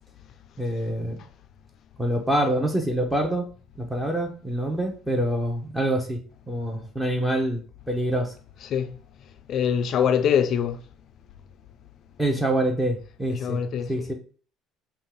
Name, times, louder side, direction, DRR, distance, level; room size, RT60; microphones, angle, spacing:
voice 1, 0.6-1.2 2.0-3.5 3.8-6.2 6.5-8.3 12.2-13.6 13.9-14.1, right 1 dB, 5° right, 1.0 m, -26 dB
voice 2, 9.5-10.8 13.3-14.1, left 8 dB, 50° left, 0.5 m, -24 dB
5.3 x 2.5 x 3.7 m
cardioid pair, 140°, 0 cm